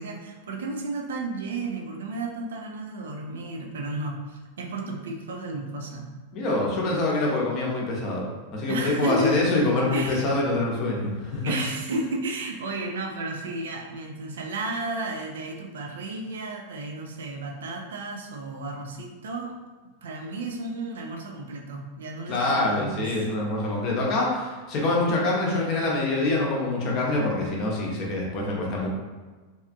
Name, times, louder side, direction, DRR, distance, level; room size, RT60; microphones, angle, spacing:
voice 1, 0.0-6.1 8.7-9.5 9.9-10.3 11.4-19.6 20.0-23.1, right 2 dB, 60° right, 1 dB, 0.4 m, -32 dB
voice 2, 6.3-11.4 22.3-28.9, left 2 dB, 40° left, -3 dB, 0.7 m, -25 dB
2.7 x 2.4 x 2.5 m, 1.3 s
figure-of-eight pair, 90°, 0 cm